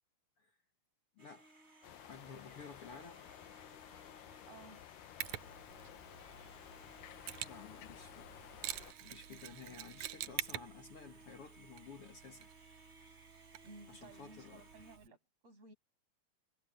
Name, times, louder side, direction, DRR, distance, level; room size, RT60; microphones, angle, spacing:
voice 1, 1.2-1.5 2.0-3.3 7.5-8.4 9.0-12.5 13.9-14.7, left 5 dB, 50° left, 2.4 m, -53 dB
sound 1, 1.2-15.0, right 2 dB, 20° right, 6.4 m, -61 dB
sound 2, 1.8-8.9, left 13 dB, 85° left, 2.5 m, -54 dB
voice 2, 4.5-4.8 13.6-15.2 15.4-15.7, right 3 dB, 50° right, 7.5 m, -56 dB
Mechanisms, 5.2-15.1, right 13 dB, 70° right, 1.9 m, -48 dB
omnidirectional pair, 3.8 m